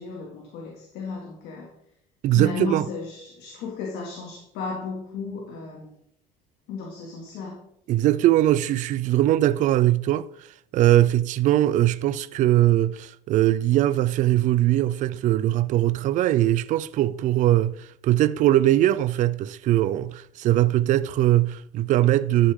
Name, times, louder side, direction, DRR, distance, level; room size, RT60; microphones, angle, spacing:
voice 1, 0.0-1.7 2.3-5.9 6.7-7.6, left 4 dB, 70° left, 2.3 m, -34 dB
voice 2, 2.2-2.9 7.9-22.5, right 14 dB, 45° right, 0.4 m, -21 dB
12.0 x 6.6 x 3.7 m
cardioid pair, 135°, 18 cm